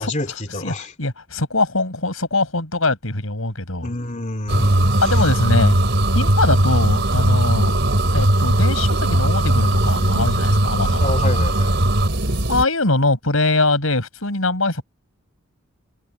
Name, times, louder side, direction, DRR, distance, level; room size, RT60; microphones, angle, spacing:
voice 1, 0.0-0.9 3.8-5.2 11.0-11.8, left 1 dB, 35° left, 3.2 m, -28 dB
voice 2, 1.0-3.9 5.0-5.8 6.1-7.7 8.1-11.2 12.5-14.8, left 2 dB, 85° left, 6.2 m, -22 dB
sound 1, 4.5-12.7, right 1 dB, 60° right, 4.2 m, -18 dB
head